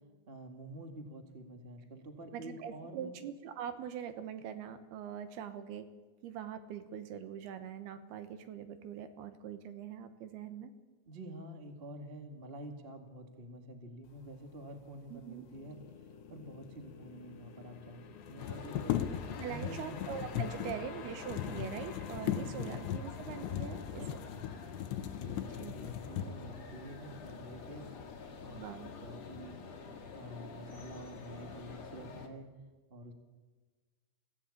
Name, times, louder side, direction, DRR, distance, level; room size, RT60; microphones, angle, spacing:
voice 1, 0.3-3.1 11.0-18.0 18.3-19.0 19.5-20.0 20.5-20.7 22.3-22.7 24.0-24.1 24.3-24.5 25.0-25.4 25.7-27.9 28.4-29.5 30.1-32.5 32.9-33.1, right 1 dB, 35° right, 5 dB, 0.9 m, -48 dB
voice 2, 2.3-5.9 6.2-10.7 15.1-15.4 19.4-24.0 25.6-25.7 28.5-28.9, right 8 dB, 70° right, 10 dB, 2.9 m, -43 dB
sound 1, 15.5-26.7, left 7 dB, 60° left, 3.3 m, -53 dB
sound 2, 16.8-16.9 17.0-17.1 18.2-26.6 27.3-27.4 27.8-28.5 28.8-29.4, left 10 dB, 90° left, 3.3 m, -38 dB
sound 3, 18.4-32.3, left 5 dB, 45° left, 2.7 m, -48 dB
24.5 x 16.0 x 8.6 m, 1.3 s
omnidirectional pair, 5.0 m